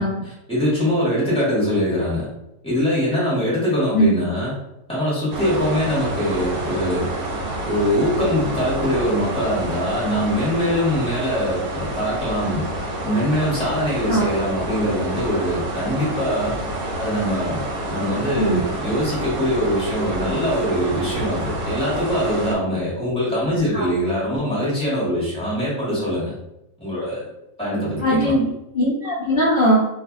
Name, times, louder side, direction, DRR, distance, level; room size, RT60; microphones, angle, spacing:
voice 1, 0.0-2.3 2.6-4.6 4.9-7.1 7.7-12.6 13.0-16.6 17.0-26.3 26.8-27.3 27.6-28.3, equal, 5° left, -10 dB, 1.0 m, -23 dB
sound 1, 5.3-22.5, right 1 dB, 75° right, 1.2 m, -28 dB
voice 2, 28.0-28.5 28.7-29.8, equal, 65° left, -7 dB, 0.5 m, -19 dB
2.6 x 2.5 x 2.4 m, 0.87 s
omnidirectional pair, 1.7 m